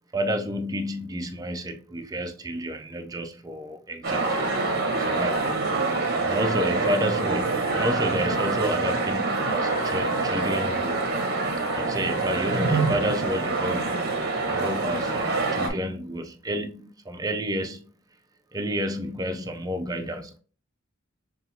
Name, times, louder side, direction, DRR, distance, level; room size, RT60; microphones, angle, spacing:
voice 1, 0.1-4.4 4.8-5.5 6.2-11.0 11.7-14.1 14.5-17.8 18.5-20.4, equal, 15° right, 0.5 m, -30 dB
sound 1, 4.0-15.7, right 3 dB, 50° right, 0.8 m, -25 dB
5.4 x 2.4 x 2.7 m
head